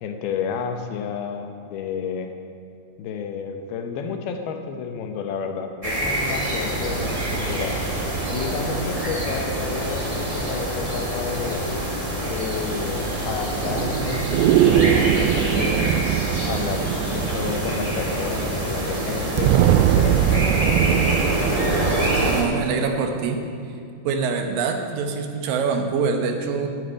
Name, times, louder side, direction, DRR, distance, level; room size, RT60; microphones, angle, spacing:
voice 1, 0.0-2.3 3.0-7.8 8.3-11.7 12.2-16.0 16.4-19.5 20.0-21.1, left 6 dB, 75° left, 5 dB, 2.8 m, -31 dB
sound 1, 5.8-22.4, equal, 30° right, 0.6 m, -26 dB
sound 2, 6.9-22.5, right 12 dB, 85° right, 2.6 m, -24 dB
voice 2, 22.2-23.4 24.0-26.7, right 5 dB, 70° right, 4 dB, 2.6 m, -24 dB
11.5 x 8.1 x 9.2 m, 2.4 s
omnidirectional pair, 4.6 m